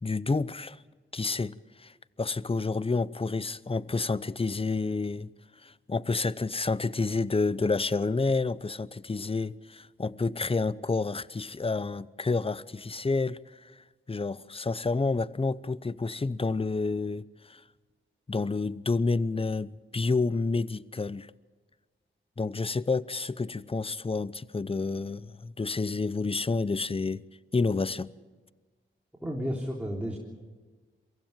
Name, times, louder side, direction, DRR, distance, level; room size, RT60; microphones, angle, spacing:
voice 1, 0.0-0.8 1.1-5.3 5.6-17.6 18.3-21.3 22.4-27.2 27.5-28.1, left 3 dB, 25° left, 0.7 m, -29 dB
voice 2, 29.2-30.2, equal, 5° right, 3.8 m, -32 dB
23.5 x 16.0 x 9.0 m
cardioid pair, 45°, 21 cm